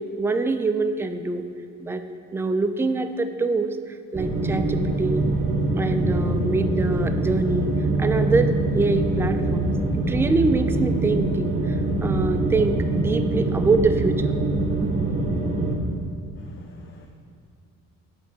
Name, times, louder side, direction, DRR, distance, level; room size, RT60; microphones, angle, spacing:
voice 1, 0.0-1.4 1.8-2.0 2.3-3.8 4.1-5.3 5.8-7.7 8.0-9.7 10.1-11.5 12.0-14.3 14.8-14.9, right 3 dB, 10° right, 8 dB, 0.3 m, -24 dB
sound 1, 4.1-15.8, right 2 dB, 25° right, 1.4 m, -24 dB
voice 2, 16.4-17.1, left 5 dB, 45° left, 3 dB, 0.6 m, -51 dB
7.5 x 4.2 x 6.3 m, 2.3 s
cardioid pair, 90°, 30 cm